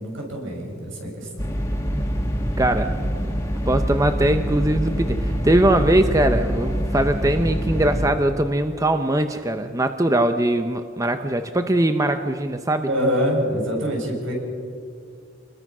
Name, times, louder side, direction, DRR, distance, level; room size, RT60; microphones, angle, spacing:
voice 1, 0.0-1.4 12.9-14.3, equal, 75° right, 0 dB, 6.8 m, -25 dB
sound 1, 1.4-8.1, equal, 15° left, 2.0 m, -25 dB
voice 2, 2.6-3.3 3.7-12.9, right 1 dB, 15° right, 8 dB, 0.8 m, -21 dB
27.5 x 21.0 x 6.1 m, 2.2 s
head